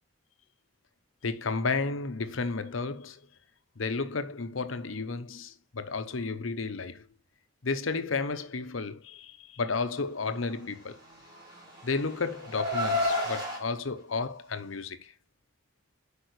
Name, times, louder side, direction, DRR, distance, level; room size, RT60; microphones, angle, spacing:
voice 1, 1.2-3.2 3.8-7.1 7.6-11.0 11.8-15.1, left 4 dB, 90° left, 0.9 m, -32 dB
Car, 11.1-13.6, left 1 dB, 20° right, 3.1 m, -31 dB
8.1 x 5.3 x 3.2 m
head